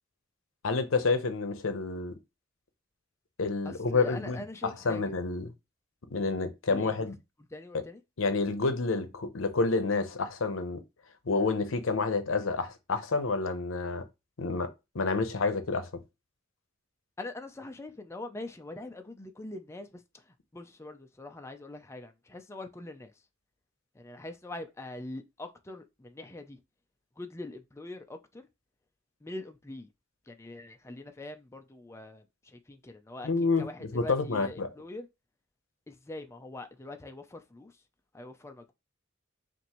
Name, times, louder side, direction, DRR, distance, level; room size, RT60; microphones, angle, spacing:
voice 1, 0.6-2.2 3.4-5.5 6.1-7.1 7.7-7.8 8.2-10.8 11.3-14.0 14.4-16.0 33.2-33.7 33.9-34.7, left 3 dB, 80° left, 0.7 m, -29 dB
voice 2, 3.6-5.1 6.7-7.1 7.5-8.0 17.2-23.1 23.9-26.6 27.2-28.5 29.2-29.9 30.3-35.1 35.9-37.8 38.1-38.7, left 2 dB, 15° left, 0.4 m, -43 dB
5.7 x 2.6 x 2.9 m
head